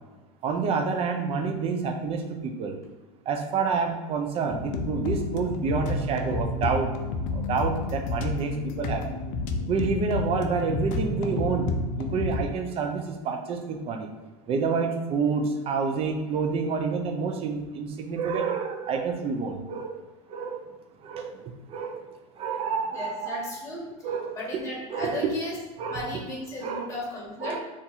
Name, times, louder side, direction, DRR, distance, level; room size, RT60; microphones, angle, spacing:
voice 1, 0.4-2.8 3.3-6.9 7.3-9.2 9.7-11.7 12.0-14.1 14.5-20.0 20.3-20.6 21.0-22.1 22.4-23.5 24.0-24.6 24.9-25.3 25.8-26.0 26.6-26.9 27.4-27.6, right 5 dB, 35° right, 5 dB, 0.5 m, -28 dB
sound 1, 4.5-12.5, left 3 dB, 50° left, 0.4 m, -30 dB
voice 2, 22.9-23.8 24.3-25.5 25.9-27.6, left 1 dB, 15° left, -3 dB, 1.3 m, -35 dB
2.6 x 2.4 x 3.9 m, 1.2 s
hypercardioid pair, 105°, 17 cm